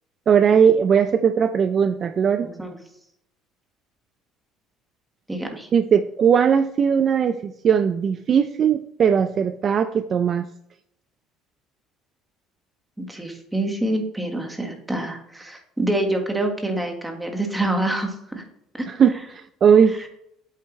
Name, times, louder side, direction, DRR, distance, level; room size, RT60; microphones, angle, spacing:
voice 1, 0.3-2.5 5.7-10.5 18.9-20.1, right 7 dB, 35° right, 10 dB, 0.4 m, -19 dB
voice 2, 5.3-5.7 13.0-18.4 18.7-18.9, right 1 dB, 5° right, 3 dB, 1.6 m, -26 dB
8.4 x 8.0 x 3.2 m, 0.76 s
cardioid pair, 140°, 0 cm